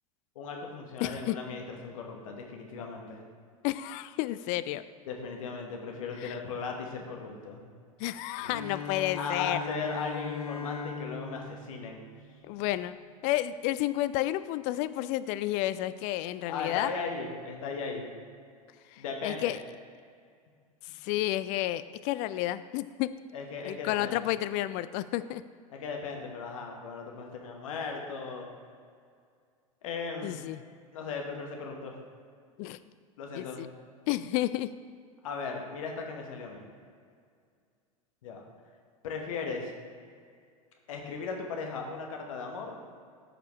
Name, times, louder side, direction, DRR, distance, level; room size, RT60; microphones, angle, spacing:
voice 1, 0.3-3.2 5.1-7.6 9.2-12.0 16.5-18.1 19.0-19.6 23.3-24.2 25.7-28.5 29.8-30.4 30.9-32.0 33.2-33.7 35.2-36.6 38.2-38.4 39.0-39.7 40.9-42.8, left 4 dB, 65° left, 2 dB, 1.4 m, -37 dB
voice 2, 1.0-1.4 3.6-4.8 6.2-6.4 8.0-9.6 12.4-13.0 13.2-16.9 18.9-19.6 20.8-23.1 23.6-25.4 30.2-30.6 32.6-32.8 33.3-33.7 34.1-34.7, left 15 dB, 40° left, 14 dB, 0.4 m, -31 dB
Bowed string instrument, 8.4-12.5, left 5 dB, 90° left, 1.1 m, -39 dB
13.5 x 5.0 x 3.2 m, 2.1 s
figure-of-eight pair, 85°, 19 cm